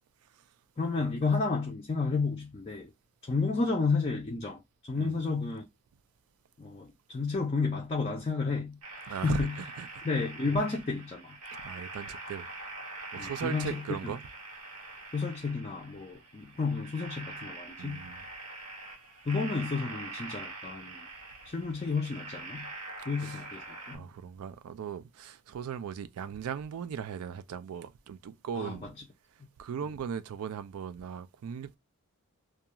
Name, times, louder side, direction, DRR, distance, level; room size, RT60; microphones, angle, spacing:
voice 1, 0.8-2.9 3.2-5.7 6.6-8.8 9.2-9.6 10.0-11.4 13.1-14.1 15.1-18.1 19.3-21.1 21.5-22.7 23.1-24.1 28.6-28.9 29.8-29.9, left 4 dB, 25° left, 0.4 m, -31 dB
sound 1, 8.8-24.0, right 3 dB, 90° right, 0.9 m, -44 dB
voice 2, 9.1-9.9 11.6-12.5 13.1-14.2 17.8-18.2 23.0-23.4 23.9-28.9 29.6-31.8, right 7 dB, 70° right, 0.3 m, -38 dB
2.3 x 2.3 x 2.8 m
head